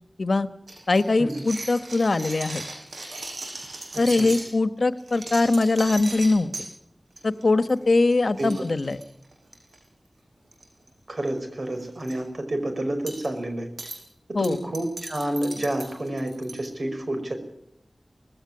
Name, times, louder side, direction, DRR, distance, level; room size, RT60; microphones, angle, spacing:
sound 1, 0.7-4.5 5.0-6.7 7.2-7.4 7.7-7.8 8.1-8.2 8.4-9.8 10.5-10.9 11.2-11.3 11.7-12.1 13.1-13.3 13.8-14.0 14.4-16.7, right 2 dB, 90° right, 6.3 m, -37 dB
voice 1, 0.9-2.6 4.0-6.5 7.2-9.0 14.3-14.6, left 3 dB, 70° left, 11 dB, 1.3 m, -22 dB
voice 2, 3.9-4.3 8.4-8.5 11.1-13.7 14.4-17.3, right 1 dB, 60° right, 7 dB, 5.3 m, -29 dB
19.0 x 16.5 x 9.9 m, 0.75 s
wide cardioid pair, 75°, 0 cm